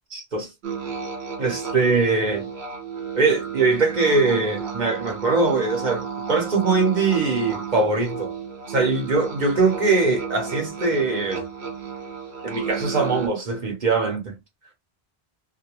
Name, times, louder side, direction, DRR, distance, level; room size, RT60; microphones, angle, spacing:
voice 1, 0.1-0.5 1.4-2.5 3.1-8.3 8.7-11.4 12.4-14.4, right 3 dB, 50° right, 0.9 m, -22 dB
sound 1, 0.6-13.3, right 6 dB, 75° right, 1.1 m, -33 dB
2.4 x 2.1 x 2.9 m
omnidirectional pair, 1.1 m